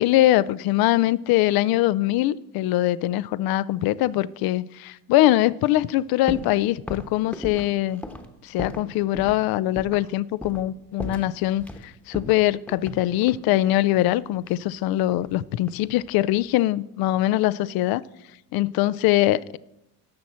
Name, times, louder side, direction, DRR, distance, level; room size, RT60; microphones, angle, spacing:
voice 1, 0.0-8.0 8.4-18.0 18.5-19.6, left 15 dB, 55° left, 0.5 m, -22 dB
sound 1, 6.3-6.6 6.9-8.9 9.2-9.4 9.8-10.1 10.4-10.7 11.0-11.8 12.1-13.5 14.5-15.4 15.7-16.1, left 1 dB, 5° left, 1.1 m, -36 dB
14.0 x 6.0 x 4.3 m
supercardioid pair, 80°, 45 cm